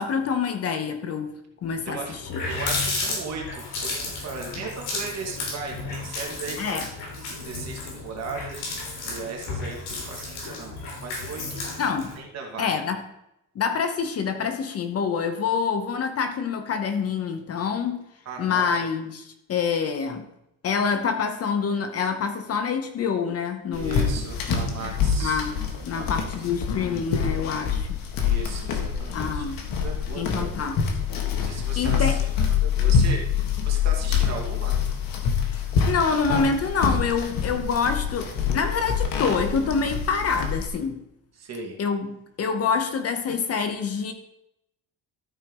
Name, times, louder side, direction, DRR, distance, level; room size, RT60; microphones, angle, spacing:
voice 1, 0.0-1.3 1.6-2.4 6.6-6.9 11.8-12.1 12.6-13.0 13.5-18.0 18.4-20.3 20.6-24.2 25.2-25.5 25.8-28.0 29.1-29.6 30.2-30.8 31.8-32.2 35.4-35.6 35.9-41.0 41.8-44.1, left 6 dB, 40° left, 7 dB, 0.9 m, -26 dB
Water tap faucet, 1.7-1.8 2.1-12.2, left 3 dB, 85° left, 4.1 m, -33 dB
voice 2, 1.9-2.2 2.4-6.9 7.1-11.7 12.2-12.7 18.3-18.9 23.7-25.4 25.7-26.3 28.2-30.7 31.4-34.8 41.4-41.8, right 4 dB, 45° right, 1 dB, 2.3 m, -37 dB
sound 1, 23.7-40.7, left 6 dB, 65° left, 1.7 m, -26 dB
13.5 x 4.5 x 5.3 m, 0.84 s
cardioid pair, 160°, 37 cm